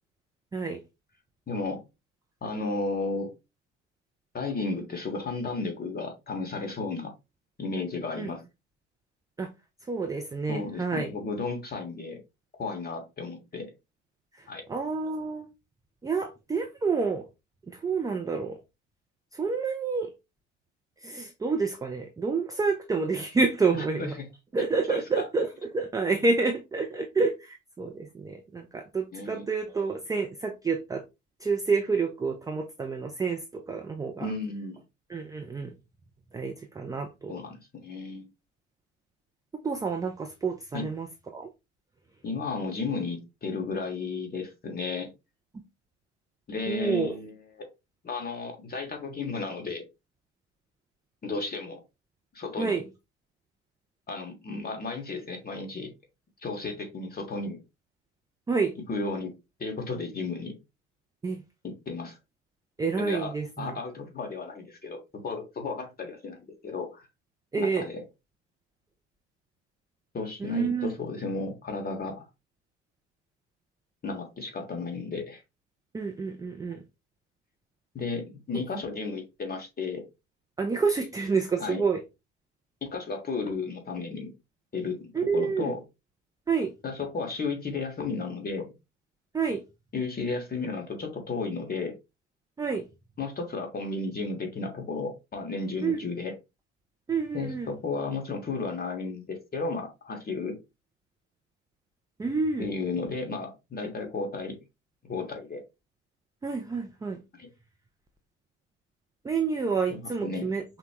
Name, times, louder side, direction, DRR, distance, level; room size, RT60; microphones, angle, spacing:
voice 1, 1.5-1.8 2.4-3.3 4.3-7.1 7.6-8.4 10.5-12.2 12.6-13.7 14.5-14.6 24.9-25.2 29.1-29.4 34.2-34.8 37.3-38.2 40.7-40.9 42.2-45.1 46.5-47.7 48.0-49.8 51.2-51.8 52.3-52.8 54.1-55.9 56.4-57.6 58.9-60.6 61.6-62.2 63.0-67.1 67.6-68.0 70.1-72.2 74.0-75.4 77.9-80.1 81.6-81.8 82.8-84.3 84.7-85.8 86.8-88.7 89.9-91.9 93.2-96.3 97.3-100.6 102.6-104.6 105.0-105.6 107.4-107.5 109.9-110.5, left 3 dB, 25° left, 1.5 m, -33 dB
voice 2, 9.9-11.1 14.4-15.5 16.0-17.2 17.7-18.6 19.3-20.1 21.0-24.1 24.5-25.5 25.7-31.0 31.4-34.3 35.1-35.7 36.3-37.3 39.6-41.1 41.3-41.5 46.7-47.2 52.6-52.8 58.5-58.7 61.2-61.4 62.8-63.8 67.5-67.9 70.4-70.9 75.9-76.8 78.5-78.6 80.6-82.0 85.1-85.7 86.5-86.7 89.3-89.6 92.6-92.9 95.8-96.0 97.1-97.7 102.2-102.7 106.4-107.2 109.2-110.6, right 4 dB, 10° right, 0.5 m, -28 dB
5.9 x 2.1 x 2.9 m
figure-of-eight pair, 65°, 37 cm